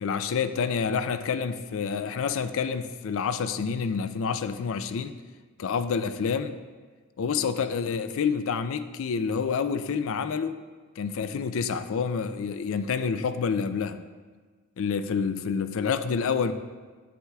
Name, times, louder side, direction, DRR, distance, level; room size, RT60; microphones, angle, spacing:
voice 1, 0.0-5.2 5.6-6.6 7.2-10.6 11.0-14.0 14.8-16.5, left 6 dB, 65° left, 11 dB, 0.4 m, -28 dB
8.4 x 7.9 x 2.3 m, 1.4 s
head